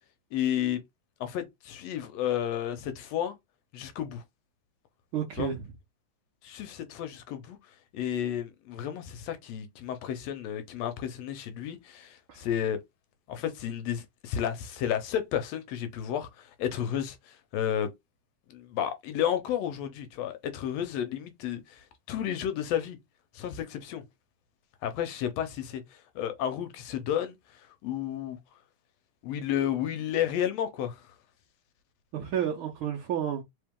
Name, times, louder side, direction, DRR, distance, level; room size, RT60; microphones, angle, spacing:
voice 1, 0.3-0.8 1.2-3.3 3.7-4.2 5.4-5.5 6.4-7.6 7.9-12.8 13.3-17.9 18.5-23.0 23.3-24.0 24.8-28.4 29.2-31.1, left 10 dB, 75° left, 1.7 m, -32 dB
voice 2, 5.1-5.6 12.3-12.5 32.1-33.4, right 9 dB, 90° right, 1.1 m, -31 dB
3.9 x 3.5 x 3.6 m
omnidirectional pair, 3.4 m